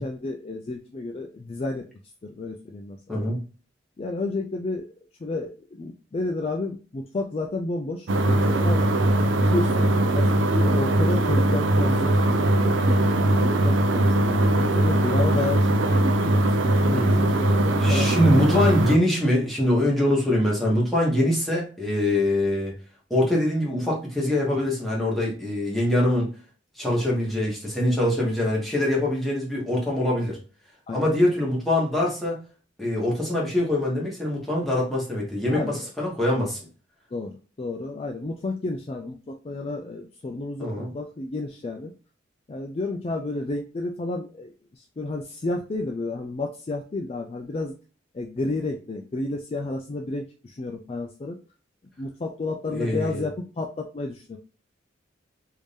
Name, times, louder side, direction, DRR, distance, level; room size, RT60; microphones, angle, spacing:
voice 1, 0.0-1.8 2.2-3.2 4.0-4.9 5.2-8.9 9.4-12.1 12.5-13.0 13.4-18.4 30.9-31.0 35.5-35.9 37.1-41.9 42.5-47.8 48.1-51.4 52.0-54.4, left 2 dB, 30° left, 2 dB, 0.3 m, -31 dB
sound 1, 8.1-19.0, right 1 dB, 80° right, 0.5 m, -20 dB
voice 2, 16.9-17.2 17.8-22.7 23.1-26.3 26.8-30.4 30.9-32.4 32.8-36.6 40.6-40.9 52.7-53.2, left 1 dB, ahead, -5 dB, 1.3 m, -23 dB
3.3 x 2.7 x 3.4 m, 0.36 s
head